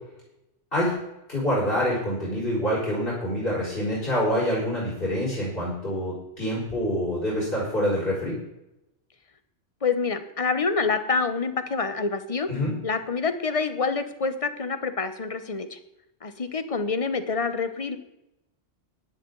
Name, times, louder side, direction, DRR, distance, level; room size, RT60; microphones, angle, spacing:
voice 1, 1.3-8.4 12.5-12.7, equal, 45° left, -6 dB, 5.1 m, -26 dB
voice 2, 9.8-12.5 12.8-15.8 16.2-18.0, left 4 dB, 30° left, 10 dB, 1.0 m, -27 dB
14.5 x 11.0 x 4.0 m, 0.87 s
omnidirectional pair, 1.2 m